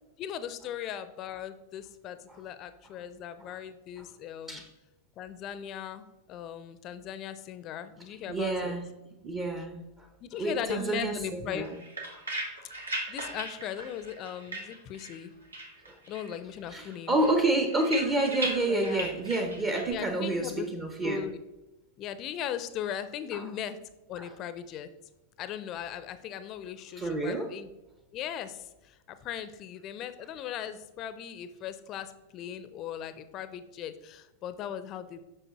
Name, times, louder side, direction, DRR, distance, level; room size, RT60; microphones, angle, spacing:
voice 1, 0.2-4.6 5.2-8.8 10.2-11.7 13.1-15.3 16.1-17.2 18.7-19.1 19.9-20.7 21.0-21.4 22.0-23.8 24.1-24.9 25.4-27.7 28.1-35.2, left 9 dB, 35° left, 12 dB, 0.5 m, -38 dB
voice 2, 8.3-8.9 9.2-10.1 10.4-11.8 12.1-12.2 13.2-13.3 15.9-16.0 16.7-21.2 23.3-23.4 24.2-24.3 27.0-27.5, right 2 dB, 25° right, 3 dB, 0.8 m, -29 dB
sound 1, 11.5-15.3 15.5-16.4 16.7-19.9, right 1 dB, 80° right, 1.3 m, -38 dB
7.8 x 6.0 x 3.0 m, 1.0 s
figure-of-eight pair, 90°, 0 cm